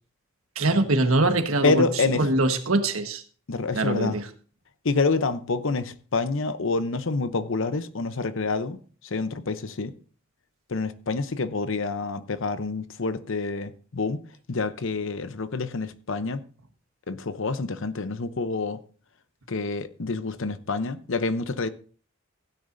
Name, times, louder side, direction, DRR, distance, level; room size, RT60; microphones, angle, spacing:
voice 1, 0.5-1.9 2.2-3.2 3.7-4.3, right 2 dB, 90° right, 1.4 m, -23 dB
voice 2, 1.6-2.3 3.5-4.2 4.8-8.8 9.0-9.9 10.7-14.2 14.5-16.4 17.1-18.8 19.5-21.7, left 3 dB, 65° left, 0.8 m, -27 dB
16.0 x 9.8 x 2.7 m
head